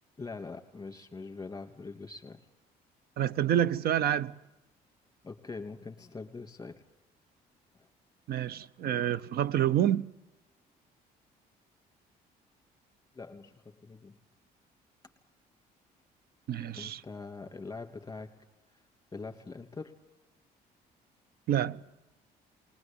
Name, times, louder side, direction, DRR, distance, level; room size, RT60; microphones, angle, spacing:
voice 1, 0.2-2.4 5.2-6.8 7.7-7.9 13.1-14.2 16.8-18.3 19.1-19.9, left 4 dB, 20° left, 2.7 m, -43 dB
voice 2, 3.2-4.4 8.3-10.1 16.5-17.0 21.5-21.8, right 11 dB, 65° right, 0.8 m, -28 dB
20.5 x 19.5 x 9.0 m
cardioid pair, 90°, 17 cm